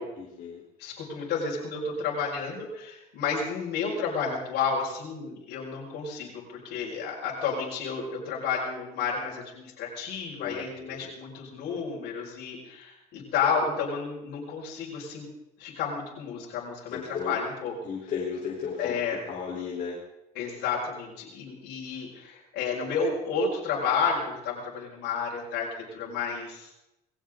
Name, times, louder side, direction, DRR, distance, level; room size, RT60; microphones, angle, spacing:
voice 1, 0.2-0.6 10.4-11.1 16.9-17.4 17.8-20.0, left 6 dB, 50° left, -4 dB, 4.2 m, -35 dB
voice 2, 0.8-15.2 15.6-17.0 17.2-17.7 18.8-19.2 20.3-26.7, left 5 dB, 75° left, -5 dB, 5.7 m, -31 dB
21.0 x 16.5 x 3.9 m, 0.90 s
cardioid pair, 110°, 17 cm